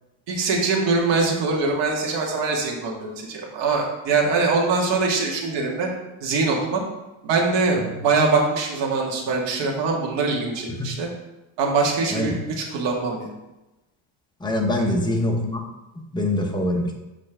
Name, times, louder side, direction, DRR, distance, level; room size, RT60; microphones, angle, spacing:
voice 1, 0.3-5.9 6.2-6.8 7.2-11.1 11.6-13.3 14.8-14.9, right 4 dB, 70° right, -1 dB, 1.7 m, -23 dB
voice 2, 14.4-15.6 16.1-16.9, left 1 dB, 10° left, 1 dB, 0.7 m, -23 dB
6.6 x 5.4 x 3.3 m, 1.0 s
cardioid pair, 150°, 46 cm